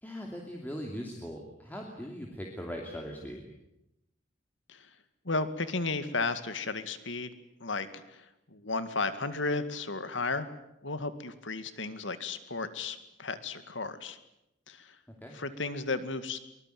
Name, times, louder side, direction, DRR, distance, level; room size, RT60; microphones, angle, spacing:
voice 1, 0.0-3.4 15.1-15.4, equal, 10° left, 0 dB, 2.8 m, -40 dB
voice 2, 5.2-7.3 7.6-10.5 10.8-14.2 14.7-15.0 15.3-16.4, left 3 dB, 85° left, 11 dB, 2.2 m, -34 dB
24.0 x 21.0 x 9.4 m, 0.88 s
head